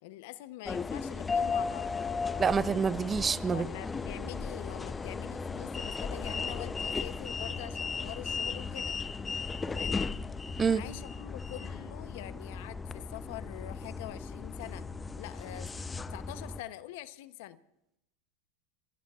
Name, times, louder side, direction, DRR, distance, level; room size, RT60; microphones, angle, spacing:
voice 1, 0.0-2.2 3.5-9.0 9.7-10.0 10.7-14.9 15.2-15.7 16.1-17.6, left 15 dB, 65° left, 0.8 m, -45 dB
sound 1, 0.7-16.6, left 4 dB, 15° left, 0.6 m, -36 dB
voice 2, 2.4-3.7 10.6-10.8, right 6 dB, 20° right, 0.6 m, -27 dB
29.5 x 15.5 x 2.4 m
hypercardioid pair, 100°, 0 cm